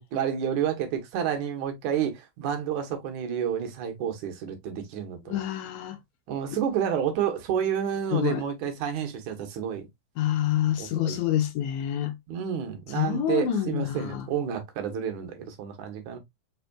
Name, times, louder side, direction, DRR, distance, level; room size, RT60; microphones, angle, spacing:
voice 1, 0.0-5.4 6.3-9.9 10.8-11.2 12.3-16.2, right 9 dB, 70° right, 2.5 m, -30 dB
voice 2, 5.3-6.0 8.1-8.4 10.2-12.1 13.0-14.3, left 11 dB, 75° left, 2.1 m, -27 dB
5.2 x 4.1 x 2.3 m
omnidirectional pair, 3.6 m